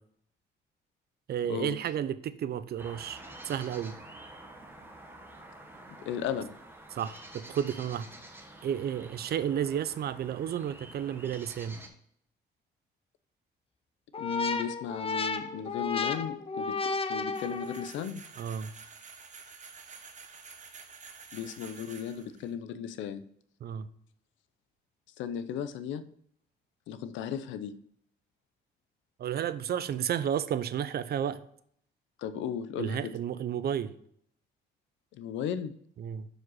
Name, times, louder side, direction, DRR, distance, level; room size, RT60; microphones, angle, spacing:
voice 1, 1.3-4.0 6.9-8.1 8.6-11.8 18.4-18.7 23.6-23.9 29.2-31.4 32.8-33.9 36.0-36.3, right 9 dB, 55° right, 14 dB, 0.5 m, -32 dB
sound 1, 2.8-11.9, right 1 dB, 10° right, 1.3 m, -49 dB
voice 2, 6.0-6.5 14.2-16.8 17.1-18.2 21.3-23.2 25.2-26.1 26.9-27.7 32.2-33.1 35.1-35.7, left 8 dB, 85° left, 12 dB, 0.6 m, -35 dB
sound 2, 14.1-18.0, left 4 dB, 30° left, 0.6 m, -33 dB
sound 3, 17.3-22.5, right 5 dB, 40° right, 1.0 m, -50 dB
6.2 x 5.0 x 4.0 m, 0.67 s
cardioid pair, 90°, 19 cm